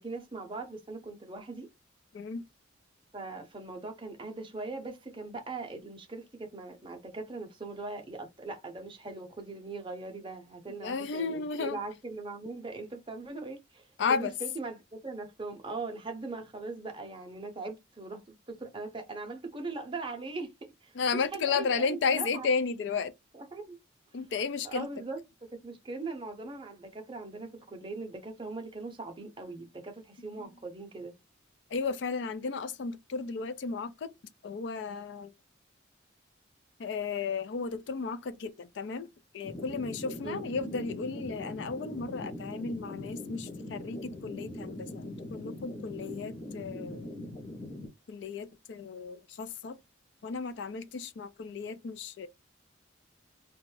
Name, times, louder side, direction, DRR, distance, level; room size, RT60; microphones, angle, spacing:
voice 1, 0.0-1.7 3.1-13.8 14.2-18.2 18.5-20.5 20.8-22.5 23.3-23.8 24.6-25.2 25.6-31.1 40.2-40.5, right 3 dB, 25° right, 0.6 m, -40 dB
voice 2, 10.8-11.8 14.0-14.3 20.9-23.1 24.1-24.9 30.4-30.5 31.7-34.1 34.4-35.3 36.8-39.1 39.3-47.1 48.1-49.8 50.2-52.3, left 5 dB, 60° left, 0.3 m, -33 dB
sound 1, 39.4-47.9, left 1 dB, 30° left, 0.6 m, -41 dB
2.5 x 2.2 x 3.1 m
head